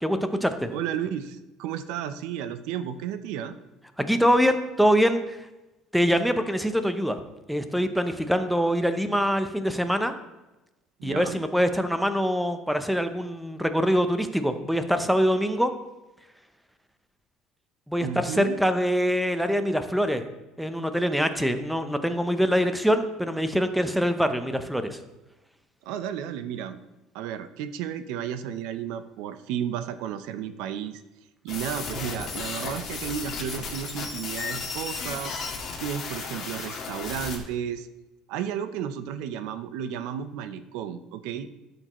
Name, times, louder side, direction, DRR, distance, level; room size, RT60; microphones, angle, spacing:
voice 1, 0.0-0.7 4.0-5.4 5.9-7.2 7.5-10.1 11.0-15.7 17.9-20.2 20.6-25.0, equal, ahead, 9 dB, 0.6 m, -24 dB
voice 2, 0.7-3.6 11.0-11.4 18.0-18.6 25.8-26.8 27.1-31.0 31.4-35.4 35.8-37.9 38.3-41.5, right 9 dB, 75° right, 11 dB, 0.6 m, -33 dB
sound 1, 31.5-37.4, left 5 dB, 40° left, 1.8 m, -34 dB
13.0 x 6.6 x 3.0 m, 1.0 s
cardioid pair, 140°, 0 cm